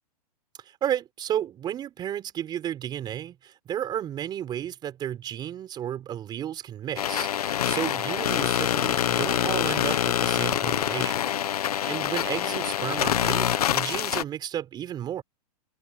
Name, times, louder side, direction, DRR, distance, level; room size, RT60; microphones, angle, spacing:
voice 1, 0.6-11.3 11.9-15.2, right 10 dB, 20° right, 4.8 m, -33 dB
sound 1, 7.0-14.2, left 10 dB, 85° left, 1.5 m, -25 dB
hypercardioid pair, 145°, 19 cm